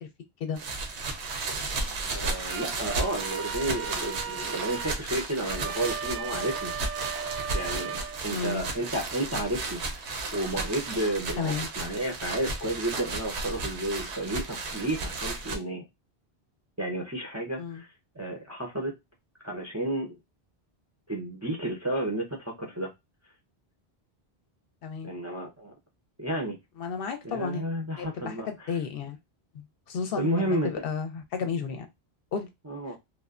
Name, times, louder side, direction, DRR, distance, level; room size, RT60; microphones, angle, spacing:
sound 1, 0.6-15.6, right 3 dB, 90° right, 1.0 m, -34 dB
voice 1, 2.1-6.7 7.5-9.8 10.3-15.9 16.8-17.9 18.2-19.0 19.4-20.2 21.1-22.9 25.0-25.7 26.2-26.6 27.2-28.8 30.2-30.9 32.7-33.0, right 1 dB, 20° right, 0.4 m, -32 dB
sound 2, 2.5-8.7, right 7 dB, 60° right, 0.7 m, -38 dB
voice 2, 8.3-8.6 11.4-11.7 17.6-17.8 24.8-25.1 26.8-27.6 28.0-29.2 29.5-31.9 32.3-32.5, left 6 dB, 70° left, 0.7 m, -32 dB
3.1 x 2.1 x 2.3 m
omnidirectional pair, 1.1 m